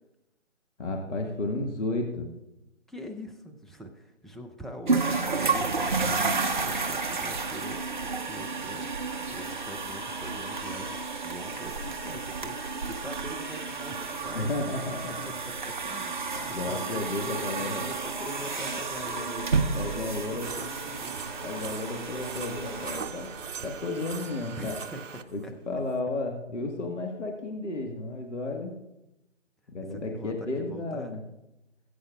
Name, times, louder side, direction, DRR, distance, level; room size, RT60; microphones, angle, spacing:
voice 1, 0.8-2.3 14.3-15.1 16.3-17.8 19.7-20.5 21.4-23.3 23.6-24.8 25.3-28.8 29.7-31.2, left 2 dB, 65° left, 1 dB, 1.7 m, -33 dB
voice 2, 2.9-5.1 5.5-8.9 9.3-14.6 15.3-21.2 24.6-25.0 25.4-25.5 29.9-31.1, equal, ahead, 2 dB, 0.3 m, -43 dB
sound 1, 4.9-23.7, right 4 dB, 40° right, 0.8 m, -31 dB
sound 2, 7.4-7.5 9.3-9.4 11.2-12.4 12.8-12.9 13.2-13.3 13.5-13.6 14.5-19.6 20.0-20.1 20.4-25.5, right 6 dB, 75° right, 0.7 m, -43 dB
19.0 x 8.7 x 2.4 m, 0.90 s
figure-of-eight pair, 160°, 39 cm